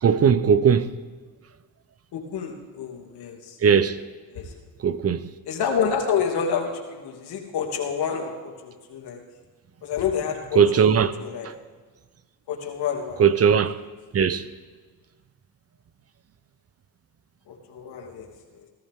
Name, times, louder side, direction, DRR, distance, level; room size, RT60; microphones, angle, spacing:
voice 1, 0.0-0.9 3.6-4.0 4.8-5.3 10.5-11.1 11.4-11.5 13.2-13.7 14.1-14.4, right 7 dB, 35° right, 0.9 m, -19 dB
voice 2, 2.1-3.5 4.3-4.5 5.5-9.2 9.8-10.6 11.2-11.5 12.5-13.2 17.5-18.3, left 7 dB, 70° left, 2.9 m, -28 dB
18.5 x 14.0 x 3.8 m
cardioid pair, 95°, 41 cm